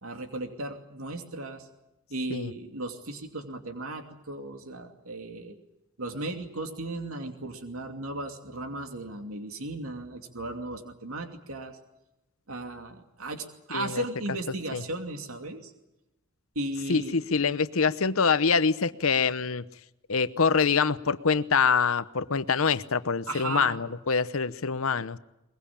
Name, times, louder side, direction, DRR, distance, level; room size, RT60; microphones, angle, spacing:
voice 1, 0.0-1.7 2.1-5.6 6.0-11.8 12.5-15.7 16.5-17.2 23.3-23.8, right 2 dB, 80° right, 5 dB, 2.7 m, -36 dB
voice 2, 13.7-14.0 14.7-14.8 16.9-19.6 20.1-25.2, left 5 dB, 75° left, 14 dB, 0.9 m, -25 dB
22.5 x 22.0 x 8.7 m, 0.95 s
head